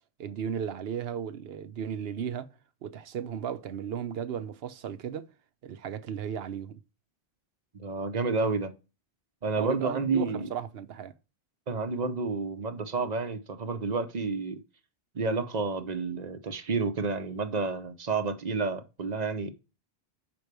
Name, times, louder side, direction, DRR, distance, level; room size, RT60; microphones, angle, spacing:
voice 1, 0.2-2.5 2.8-5.3 5.6-6.8 9.6-11.1, right 8 dB, 70° right, 0.9 m, -35 dB
voice 2, 7.7-8.7 9.4-10.5 11.7-14.6 15.1-19.5, right 4 dB, 45° right, 0.9 m, -30 dB
6.0 x 4.6 x 6.6 m
omnidirectional pair, 1.1 m